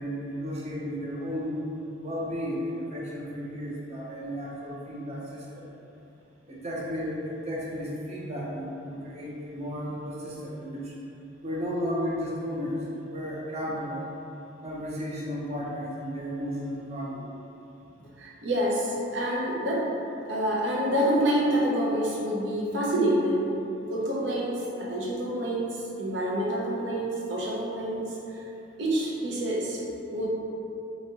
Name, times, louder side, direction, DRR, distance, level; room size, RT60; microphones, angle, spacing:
voice 1, 0.0-1.6 2.0-5.7 6.5-10.9 11.4-12.8 13.1-14.0 14.6-17.3, equal, 35° right, -5 dB, 0.6 m, -33 dB
voice 2, 18.2-19.9 20.3-23.6 23.9-28.2 28.8-29.8 30.1-30.3, right 1 dB, 70° right, -4 dB, 0.7 m, -27 dB
3.4 x 2.9 x 2.9 m, 2.8 s
head